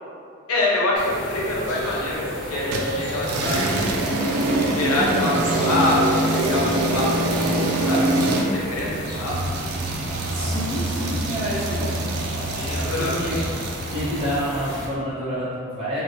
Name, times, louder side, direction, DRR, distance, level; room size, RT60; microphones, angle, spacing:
voice 1, 0.5-3.7 4.5-9.4 12.6-13.1, left 2 dB, 85° left, -4 dB, 0.6 m, -25 dB
sound 1, 1.0-14.9, equal, 50° right, 1.0 m, -33 dB
sound 2, 2.7-14.5, right 1 dB, 85° right, 0.3 m, -25 dB
voice 2, 10.3-12.0 12.3-13.4 13.9-16.0, equal, 25° right, -10 dB, 0.7 m, -29 dB
2.4 x 2.1 x 2.7 m, 2.3 s
head